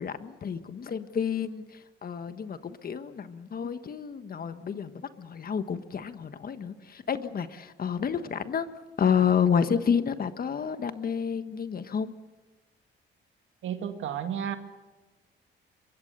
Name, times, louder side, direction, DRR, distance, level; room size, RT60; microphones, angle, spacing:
voice 1, 0.0-8.7 9.0-12.1, left 7 dB, 50° left, 10 dB, 1.4 m, -29 dB
voice 2, 13.6-14.6, right 9 dB, 80° right, 7 dB, 2.0 m, -32 dB
23.5 x 22.5 x 6.8 m, 1.2 s
cardioid pair, 90°, 20 cm